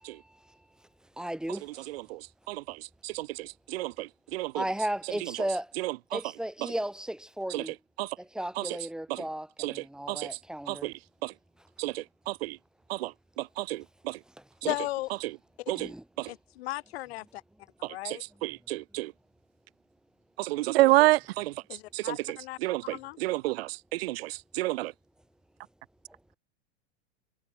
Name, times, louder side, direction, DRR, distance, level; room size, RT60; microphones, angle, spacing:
voice 1, 0.1-2.1 4.5-5.8 6.1-7.8 8.2-11.0 11.6-11.7 13.8-13.9 14.2-14.7 15.7-16.3 18.9-19.0 25.6-25.7 26.1-26.2, right 1 dB, ahead, 2.8 m, -36 dB
voice 2, 2.1-4.6 5.8-5.9 7.5-7.6 8.0-8.1 9.6-9.7 10.1-10.3 10.7-10.9 11.2-11.3 11.8-12.6 12.9-14.2 15.7-15.9 17.8-19.1 20.4-21.5 21.9-22.2 22.6-24.9, right 19 dB, 60° right, 2.2 m, -29 dB
voice 3, 14.7-15.1 15.6-15.7 16.3-17.4 17.9-18.2 21.7-22.6 22.9-23.2, left 18 dB, 65° left, 4.8 m, -36 dB
supercardioid pair, 155°, 33 cm